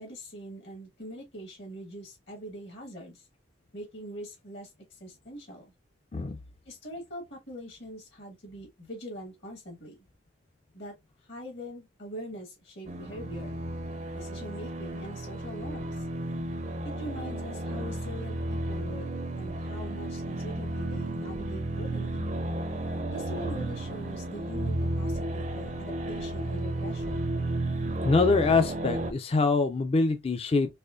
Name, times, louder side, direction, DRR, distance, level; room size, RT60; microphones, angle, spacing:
voice 1, 0.0-3.3 3.7-5.7 6.6-10.0 10.7-10.9 11.3-13.6 14.1-16.1 17.0-19.1 19.4-22.3 23.1-27.3, equal, 60° left, 1.4 m, -42 dB
sound 1, 12.9-29.1, right 1 dB, 35° right, 0.4 m, -33 dB
voice 2, 28.0-30.8, left 3 dB, 30° left, 0.3 m, -24 dB
4.2 x 3.0 x 2.4 m
head